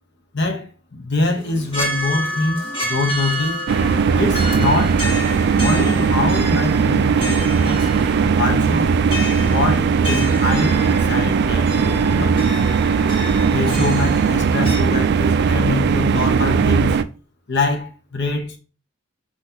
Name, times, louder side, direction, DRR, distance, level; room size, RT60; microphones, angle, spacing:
voice 1, 0.3-3.6 4.2-5.0 5.6-7.9 8.4-9.0 9.5-12.4 13.5-17.0 17.5-18.6, left 3 dB, 55° left, 1.0 m, -24 dB
sound 1, 1.2-14.8, left 1 dB, 25° left, 1.8 m, -30 dB
sound 2, 3.7-17.0, right 6 dB, 55° right, 0.3 m, -18 dB
5.6 x 3.1 x 2.8 m
head